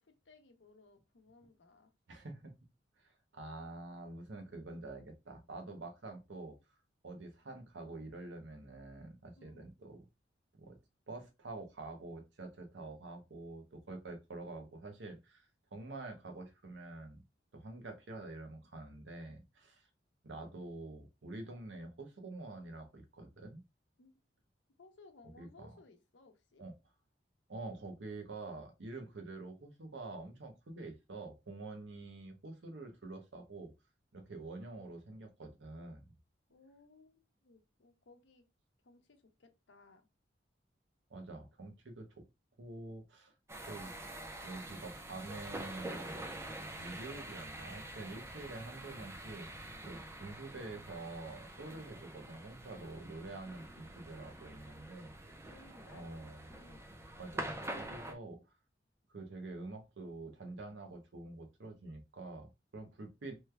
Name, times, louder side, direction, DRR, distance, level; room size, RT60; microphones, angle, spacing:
voice 1, 0.0-1.9 9.4-9.7 24.0-24.1 24.8-26.7 36.5-38.4 38.8-40.1 55.5-56.1 56.5-56.9, left 3 dB, 85° left, 0.7 m, -61 dB
voice 2, 2.1-2.5 3.0-6.6 7.0-10.0 10.6-10.8 11.1-15.5 15.7-17.2 17.5-19.9 20.2-23.6 25.4-25.7 26.6-26.7 27.5-33.7 34.1-36.1 41.1-42.2 42.6-43.3 43.7-43.9 44.4-46.2 46.8-49.5 49.8-55.1 55.9-56.5 57.2-58.5 59.1-63.4, right 2 dB, 80° right, 0.8 m, -47 dB
sound 1, 43.5-58.1, right 1 dB, 15° right, 0.5 m, -46 dB
3.2 x 2.3 x 3.2 m
head